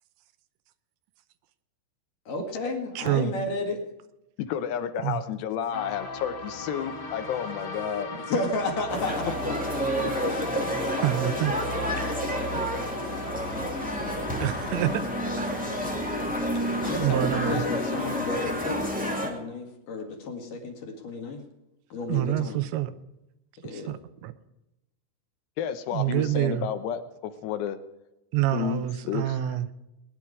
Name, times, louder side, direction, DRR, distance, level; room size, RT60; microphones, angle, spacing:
voice 1, 2.3-3.8 8.3-9.4 10.2-10.5 16.8-21.4 21.9-22.6 23.6-23.9, left 2 dB, 55° left, 3 dB, 3.1 m, -32 dB
voice 2, 3.0-3.3 5.0-5.2 11.0-11.6 14.4-15.0 15.4-15.6 17.0-17.6 22.1-22.9 23.7-24.3 25.9-26.7 28.3-29.7, right 13 dB, 85° right, 12 dB, 3.1 m, -27 dB
voice 3, 4.4-8.1 10.0-10.1 25.6-27.8 28.5-29.7, left 9 dB, 80° left, 9 dB, 3.0 m, -31 dB
sound 1, 5.7-19.0, left 2 dB, 35° left, 2.7 m, -36 dB
sound 2, 8.9-19.3, equal, 15° right, 0.3 m, -30 dB
20.0 x 10.5 x 4.9 m, 0.91 s
omnidirectional pair, 5.1 m